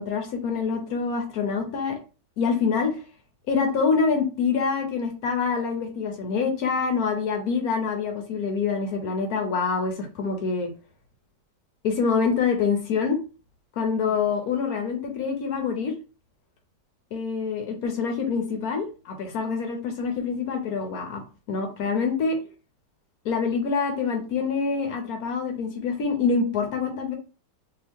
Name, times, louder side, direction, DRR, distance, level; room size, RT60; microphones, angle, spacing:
voice 1, 0.0-1.9 2.4-3.0 3.5-10.7 11.8-13.2 13.8-15.9 17.1-22.4 23.2-27.2, left 5 dB, 65° left, 3 dB, 1.2 m, -26 dB
2.9 x 2.8 x 3.5 m, 0.34 s
omnidirectional pair, 1.8 m